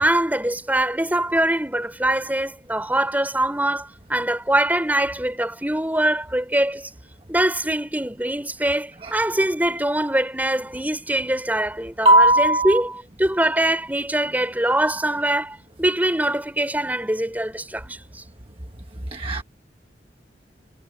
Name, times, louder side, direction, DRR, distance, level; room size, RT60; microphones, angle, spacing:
voice 1, 0.0-6.9 7.3-18.0, right 1 dB, 10° right, 5.5 m, -23 dB
voice 2, 12.0-12.8 19.1-19.4, right 1 dB, 30° right, 1.2 m, -16 dB
head